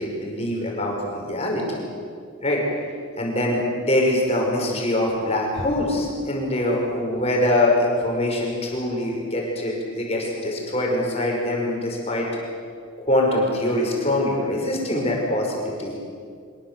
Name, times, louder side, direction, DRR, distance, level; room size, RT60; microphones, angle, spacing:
voice 1, 0.0-1.9 2.4-2.6 3.1-12.3 13.0-16.0, left 1 dB, 30° left, -1 dB, 5.7 m, -23 dB
25.0 x 22.5 x 7.7 m, 2.2 s
head